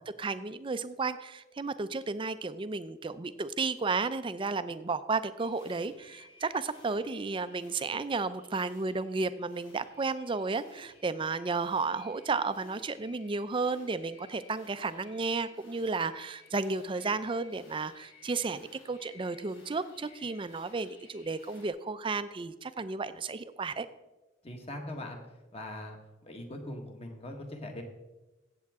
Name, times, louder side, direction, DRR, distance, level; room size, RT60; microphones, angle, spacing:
voice 1, 0.2-23.9, right 4 dB, 25° right, 13 dB, 0.5 m, -33 dB
sound 1, 5.4-21.7, left 2 dB, 80° left, 3.3 m, -58 dB
voice 2, 24.4-25.2 25.5-27.8, left 1 dB, 35° left, 3 dB, 1.5 m, -41 dB
16.0 x 7.6 x 3.6 m, 1.1 s
head